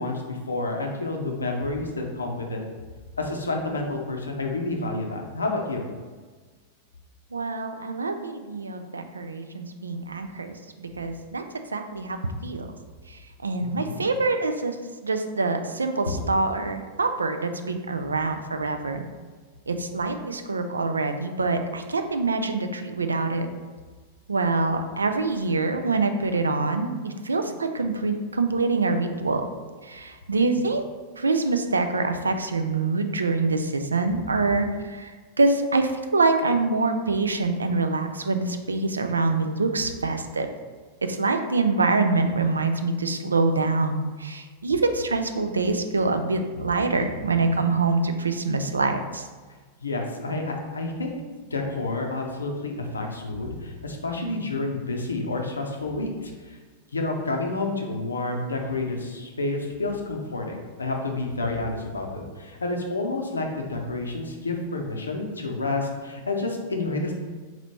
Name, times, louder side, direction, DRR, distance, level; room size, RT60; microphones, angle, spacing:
voice 1, 0.0-2.6 3.2-5.9 13.6-14.1 49.8-51.1 51.5-56.6 56.9-67.1, left 2 dB, 75° left, 2 dB, 0.5 m, -29 dB
voice 2, 7.3-11.4 11.7-12.7 13.4-14.8 15.0-19.0 19.7-23.5 24.3-29.4 29.8-30.8 31.2-35.1 35.4-40.5 41.0-49.2, right 3 dB, 75° right, 7 dB, 0.3 m, -25 dB
4.0 x 3.0 x 3.0 m, 1.4 s
figure-of-eight pair, 90°, 0 cm